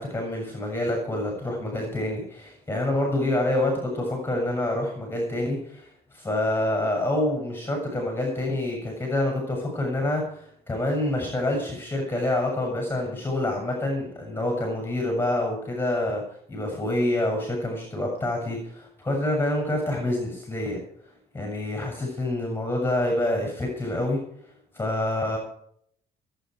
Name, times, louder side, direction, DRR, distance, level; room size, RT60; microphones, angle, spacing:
voice 1, 0.0-16.2 16.5-20.8 21.3-24.2 24.7-25.4, left 1 dB, 10° left, 1 dB, 7.0 m, -27 dB
24.0 x 9.3 x 4.8 m, 0.66 s
cardioid pair, 110°, 17 cm